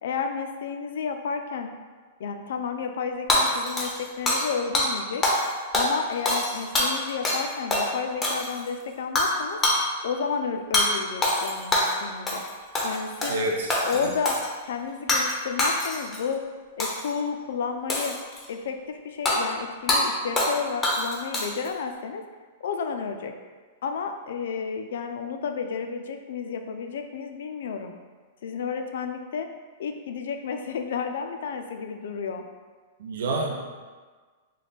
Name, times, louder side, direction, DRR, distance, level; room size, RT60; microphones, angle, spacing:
voice 1, 0.0-1.7 2.2-5.2 5.7-9.6 10.0-12.4 12.8-13.3 13.8-14.4 14.6-16.4 16.8-18.2 18.5-22.2 22.6-23.3 23.8-28.0 28.4-29.5 29.8-32.4, left 6 dB, 75° left, 6 dB, 0.3 m, -31 dB
Hammer / Shatter, 3.3-4.5 4.7-4.9 5.2-5.5 5.7-7.4 7.7-7.9 8.2-8.7 9.2-9.3 9.6-9.8 10.7-10.9 11.2-12.0 12.3-12.5 12.7-13.4 13.7-14.5 15.1-15.3 15.6-16.2 16.8-17.1 17.9-18.5 19.3-19.4 19.9-20.0 20.4-20.6 20.8-21.7, left 1 dB, 15° left, 0.5 m, -24 dB
voice 2, 13.3-14.1 33.0-33.6, right 2 dB, 75° right, 1 dB, 0.6 m, -28 dB
3.2 x 2.2 x 4.0 m, 1.5 s
supercardioid pair, 160°, 0 cm